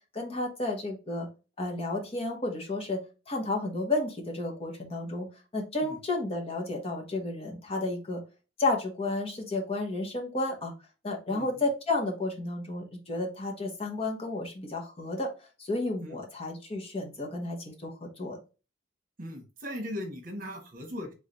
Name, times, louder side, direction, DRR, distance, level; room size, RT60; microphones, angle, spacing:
voice 1, 0.1-1.3 1.6-3.0 3.3-5.3 5.5-8.2 8.6-10.7 11.0-15.3 15.6-18.4, left 2 dB, 30° left, 1 dB, 1.1 m, -32 dB
voice 2, 11.3-11.6 16.0-16.2 19.2-21.1, left 1 dB, 45° right, 3 dB, 1.3 m, -39 dB
3.6 x 3.2 x 3.9 m, 0.31 s
head